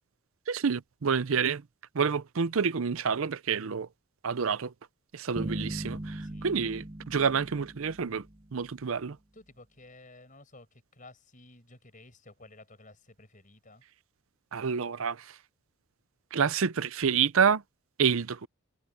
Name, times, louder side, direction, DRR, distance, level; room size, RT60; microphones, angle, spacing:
voice 1, 0.5-1.6 1.9-3.9 4.2-4.7 5.1-8.2 8.5-9.2 14.5-15.2 16.3-17.6 18.0-18.5, right 6 dB, 70° right, 0.6 m, -28 dB
sound 1, 5.4-8.8, right 1 dB, 25° right, 0.7 m, -39 dB
voice 2, 6.2-6.6 9.3-13.8, left 2 dB, 35° left, 6.6 m, -54 dB
head